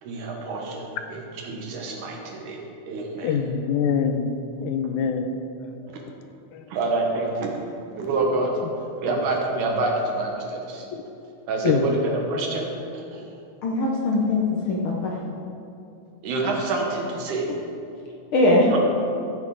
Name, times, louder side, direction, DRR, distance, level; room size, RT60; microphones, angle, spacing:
voice 1, 0.0-2.6 2.9-3.3 6.7-7.5 8.0-8.5 9.0-10.8 11.5-13.3 16.2-17.5 18.7-18.8, right 3 dB, 90° right, 0 dB, 2.8 m, -27 dB
voice 2, 3.2-4.3 4.6-6.1 6.5-6.7 9.1-9.2 10.9-11.0 11.6-12.2, left 6 dB, 90° left, 7 dB, 2.1 m, -25 dB
voice 3, 13.6-15.1 18.3-18.8, left 2 dB, 65° left, -2 dB, 1.4 m, -21 dB
14.5 x 7.3 x 4.0 m, 2.7 s
omnidirectional pair, 3.4 m